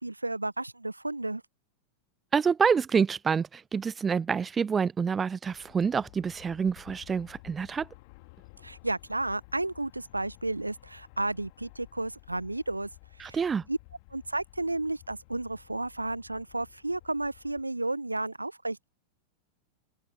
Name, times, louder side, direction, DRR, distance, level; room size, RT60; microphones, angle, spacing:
voice 1, 0.0-1.4 8.6-12.9 13.2-13.4 13.7-13.8 14.1-18.9, right 2 dB, 85° right, 1.0 m, -32 dB
voice 2, 2.3-7.9 13.2-13.6, right 6 dB, 20° right, 0.5 m, -27 dB
Aircraft, 5.4-17.6, left 27 dB, 45° left, 2.2 m, -54 dB
open air
figure-of-eight pair, 90°, 0 cm